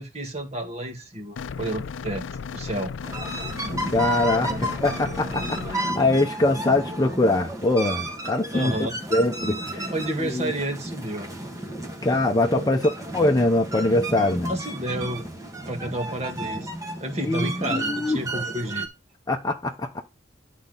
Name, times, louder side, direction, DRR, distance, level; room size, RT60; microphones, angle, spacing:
voice 1, 0.0-2.3 2.5-2.9 8.5-9.0 9.9-11.3 12.5-12.8 14.5-15.2 15.7-16.7 17.0-18.9, right 1 dB, 35° right, 1.8 m, -30 dB
sound 1, 1.4-5.8, left 6 dB, 85° left, 0.4 m, -35 dB
Kamakura Leaf Music - Japan, 3.0-18.9, right 1 dB, 20° right, 1.7 m, -32 dB
voice 2, 3.9-8.7 9.1-9.9 10.2-10.5 12.0-14.5 17.2-18.2 19.3-20.0, left 2 dB, 20° left, 0.8 m, -23 dB
11.0 x 4.2 x 3.9 m
head